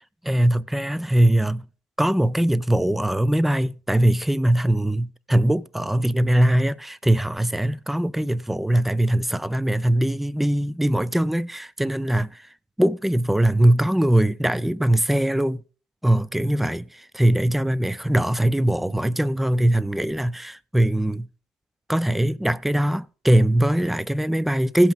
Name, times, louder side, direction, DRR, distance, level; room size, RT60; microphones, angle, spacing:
voice 1, 0.2-1.7 2.0-12.5 12.8-15.6 16.0-21.3 21.9-24.9, right 1 dB, 5° right, 0.4 m, -21 dB
16.0 x 5.6 x 5.1 m
cardioid pair, 110°, 5 cm